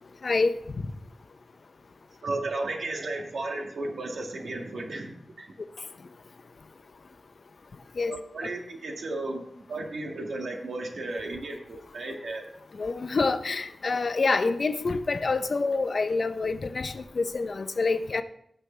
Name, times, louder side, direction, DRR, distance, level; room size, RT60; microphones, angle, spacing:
voice 1, 2.2-5.5 8.1-9.4 9.7-12.4, right 2 dB, 85° right, 2.1 m, -34 dB
voice 2, 12.8-18.2, left 3 dB, 60° left, 0.7 m, -26 dB
17.0 x 6.5 x 3.3 m
wide cardioid pair, 90°, 0 cm